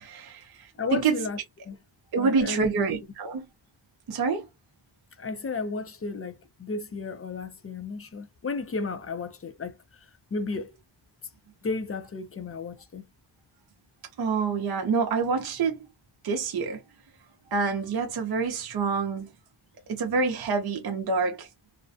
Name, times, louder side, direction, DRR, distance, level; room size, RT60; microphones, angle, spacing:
voice 1, 0.0-1.2 2.1-3.4 4.1-4.5 14.2-15.8 16.2-16.8 17.5-19.3 19.9-21.5, right 4 dB, 50° right, 0.6 m, -27 dB
voice 2, 0.8-1.4 1.6-1.8 2.2-2.9 5.2-9.8 10.3-10.8 11.6-13.1, left 4 dB, 30° left, 0.4 m, -33 dB
2.4 x 2.1 x 2.5 m
wide cardioid pair, 155°, 47 cm